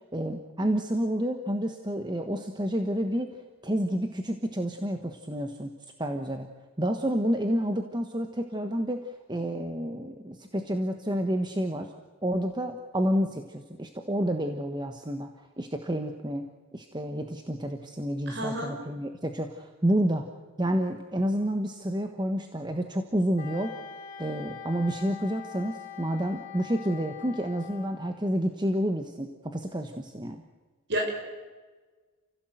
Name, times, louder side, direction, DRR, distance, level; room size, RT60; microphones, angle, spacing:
voice 1, 0.1-3.3 3.6-5.7 6.0-6.5 6.8-11.9 12.2-15.3 15.6-16.5 16.7-20.2 20.6-23.7 24.2-30.4, equal, 20° right, 5 dB, 1.2 m, -29 dB
voice 2, 18.3-18.7 30.9-31.1, equal, 50° right, 2 dB, 6.0 m, -29 dB
Wind instrument woodwind instrument, 23.4-28.2, left 8 dB, 35° left, 2.9 m, -43 dB
29.0 x 16.5 x 8.0 m, 1.3 s
head